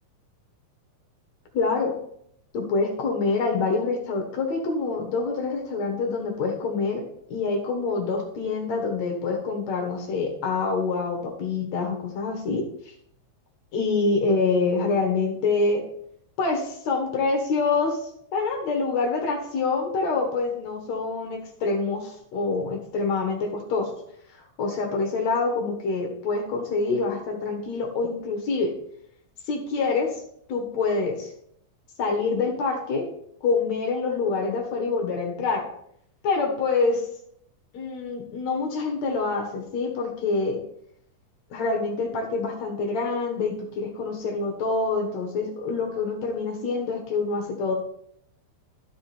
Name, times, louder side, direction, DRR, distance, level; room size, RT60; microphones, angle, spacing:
voice 1, 1.5-1.9 2.5-7.0 7.3-12.9 13.7-15.8 16.4-24.0 24.3-28.7 29.5-30.2 30.5-31.3 32.0-33.1 33.4-35.7 36.2-37.1 37.7-40.6 41.5-47.7, left 4 dB, 60° left, 2 dB, 2.3 m, -26 dB
13.0 x 5.0 x 4.2 m, 0.71 s
omnidirectional pair, 3.8 m